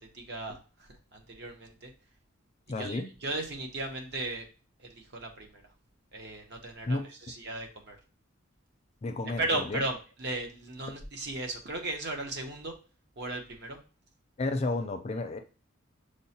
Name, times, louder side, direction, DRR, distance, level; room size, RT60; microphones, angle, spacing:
voice 1, 0.1-0.6 1.1-1.9 2.8-4.5 5.1-5.5 6.1-7.0 7.3-8.0 9.4-12.7 13.2-13.8, right 2 dB, 55° right, 3 dB, 0.8 m, -35 dB
voice 2, 2.7-3.1 6.9-7.1 9.0-9.8 14.4-15.4, left 2 dB, 30° left, 6 dB, 0.4 m, -32 dB
6.1 x 2.1 x 2.7 m, 0.35 s
head